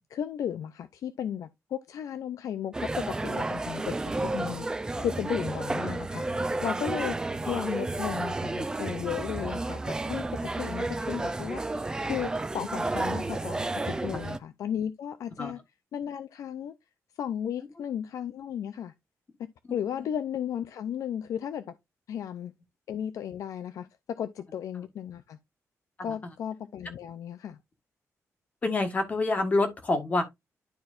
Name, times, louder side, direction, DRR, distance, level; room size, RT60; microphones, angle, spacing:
voice 1, 0.0-15.6 15.9-16.7 17.2-18.9 19.7-21.6 22.1-22.5 22.9-23.9 24.2-25.4 26.0-27.6, left 9 dB, 80° left, 0.5 m, -35 dB
sound 1, 2.7-14.4, right 2 dB, 15° right, 0.4 m, -31 dB
voice 2, 28.6-30.2, left 2 dB, 25° left, 1.4 m, -26 dB
11.5 x 4.3 x 2.5 m
wide cardioid pair, 175°, 6 cm